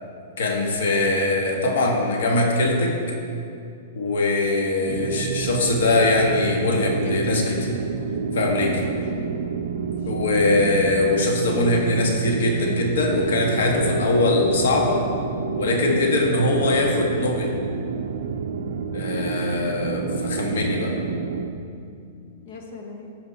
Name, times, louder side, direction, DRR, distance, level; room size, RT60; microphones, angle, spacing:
voice 1, 0.4-2.9 4.0-7.7 8.3-8.8 10.1-15.0 15.6-17.6 18.9-20.9, left 2 dB, 80° left, 1 dB, 1.8 m, -22 dB
sound 1, 4.9-21.5, right 6 dB, 65° right, 0.5 m, -29 dB
voice 2, 6.8-7.7 8.6-9.3 9.7-10.0 22.4-23.2, left 3 dB, 50° left, 2 dB, 1.3 m, -38 dB
14.5 x 5.1 x 4.3 m, 2.5 s
hypercardioid pair, 165°, 0 cm